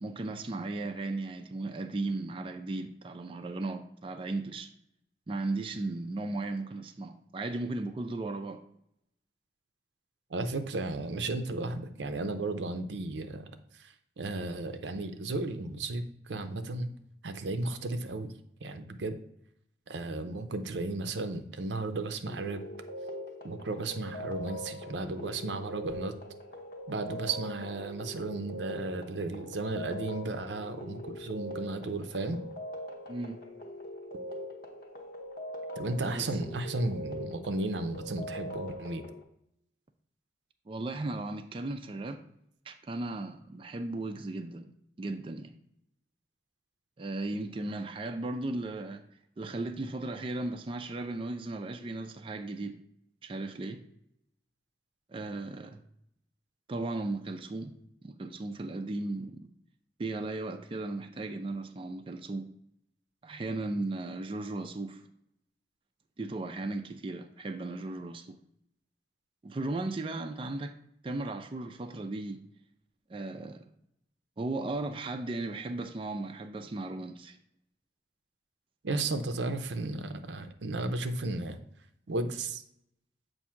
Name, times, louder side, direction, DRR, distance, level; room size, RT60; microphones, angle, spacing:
voice 1, 0.0-4.7 5.3-8.6 33.1-33.4 36.1-36.3 40.7-42.2 42.7-44.7 45.0-45.6 47.0-49.1 49.4-52.8 53.2-53.8 55.1-55.8 56.7-59.5 60.0-62.5 63.2-65.0 66.2-68.4 69.4-70.7 71.0-72.4 73.1-73.7 74.4-77.4, right 2 dB, 30° right, 0.4 m, -36 dB
voice 2, 10.3-16.9 17.2-18.3 18.6-19.2 19.9-22.6 23.4-26.2 26.9-32.4 35.8-39.0 78.8-81.6 82.1-82.6, right 2 dB, 85° right, 0.6 m, -34 dB
sound 1, 22.2-39.2, equal, 55° left, 0.8 m, -42 dB
7.3 x 2.6 x 5.6 m
head